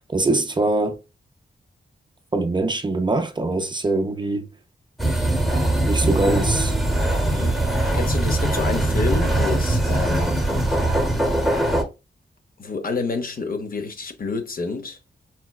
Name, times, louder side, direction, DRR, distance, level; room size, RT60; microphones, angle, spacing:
voice 1, 0.1-1.0 2.3-4.5 5.9-6.8, right 2 dB, 25° right, 0.4 m, -22 dB
sound 1, 5.0-11.8, right 1 dB, ahead, 0.8 m, -21 dB
voice 2, 7.3-10.4 12.6-15.0, left 4 dB, 55° left, 0.6 m, -29 dB
4.4 x 2.1 x 2.3 m
wide cardioid pair, 105°, 18 cm